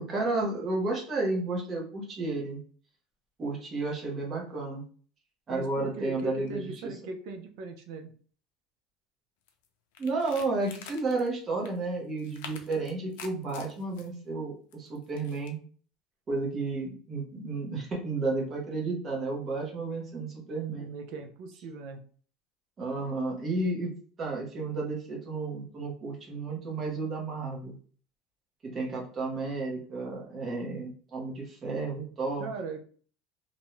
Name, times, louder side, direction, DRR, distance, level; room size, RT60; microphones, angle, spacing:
voice 1, 0.0-2.6 3.4-4.8 5.5-6.9 10.0-15.6 16.3-20.9 22.8-23.9 24.2-27.8 28.6-32.5, right 3 dB, 20° right, -2 dB, 0.7 m, -32 dB
voice 2, 5.5-8.1 20.8-22.0 32.4-32.8, right 3 dB, 55° right, 5 dB, 0.5 m, -39 dB
sound 1, 9.5-9.7 9.9-11.3 11.6-11.8 12.2-14.1 14.7-15.5, left 6 dB, 85° left, 0.5 m, -46 dB
2.5 x 2.2 x 3.0 m, 0.44 s
cardioid pair, 175°, 0 cm